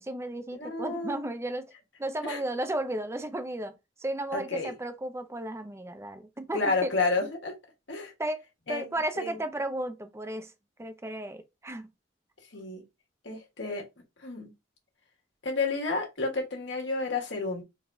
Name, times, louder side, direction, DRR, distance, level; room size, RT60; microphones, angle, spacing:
voice 1, 0.0-1.6 2.0-3.7 4.0-6.9 8.2-8.4 8.7-10.5 10.8-11.9, right 1 dB, 15° right, 0.6 m, -34 dB
voice 2, 0.6-1.3 2.2-2.4 4.3-4.8 6.5-7.6 7.9-8.1 8.7-9.4 12.5-12.8 13.2-13.8 14.2-14.5 15.4-17.6, left 3 dB, 75° left, 1.6 m, -31 dB
4.0 x 2.8 x 3.4 m
head